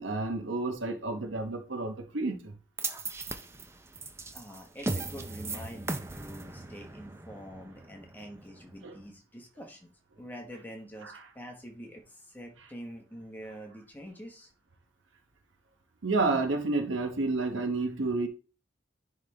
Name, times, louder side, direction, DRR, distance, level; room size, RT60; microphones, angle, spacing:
voice 1, 0.0-2.5 8.8-8.9 16.0-18.3, right 3 dB, 85° right, 1.0 m, -30 dB
sound 1, 2.8-9.1, right 3 dB, 15° right, 0.4 m, -38 dB
voice 2, 4.3-9.9 10.2-14.5, equal, 10° left, 1.2 m, -46 dB
10.5 x 3.5 x 3.3 m
head